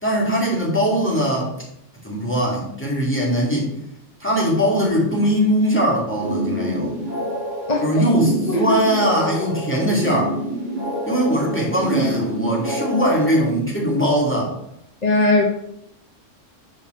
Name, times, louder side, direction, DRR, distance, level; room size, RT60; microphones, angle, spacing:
voice 1, 0.0-1.5 2.0-3.7 4.2-6.9 7.8-10.4 11.1-14.6, equal, 10° left, -5 dB, 2.7 m, -20 dB
sound 1, 6.1-13.5, right 1 dB, 35° right, 1.9 m, -27 dB
voice 2, 15.0-15.4, left 2 dB, 35° left, 0 dB, 1.0 m, -18 dB
9.6 x 4.9 x 4.6 m, 0.75 s
omnidirectional pair, 1.3 m